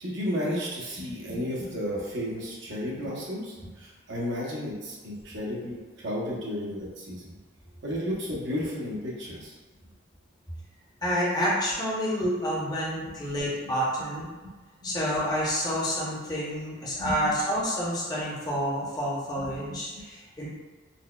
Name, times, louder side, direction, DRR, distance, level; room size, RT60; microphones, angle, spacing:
voice 1, 0.0-7.3 7.8-9.5 12.2-12.3 14.8-14.9 17.0-17.2 19.5-19.6 19.9-20.0, equal, 65° right, -4 dB, 0.8 m, -33 dB
voice 2, 11.0-14.3 14.8-20.5, equal, 20° left, -7 dB, 0.7 m, -28 dB
4.1 x 2.2 x 2.2 m, 1.3 s
head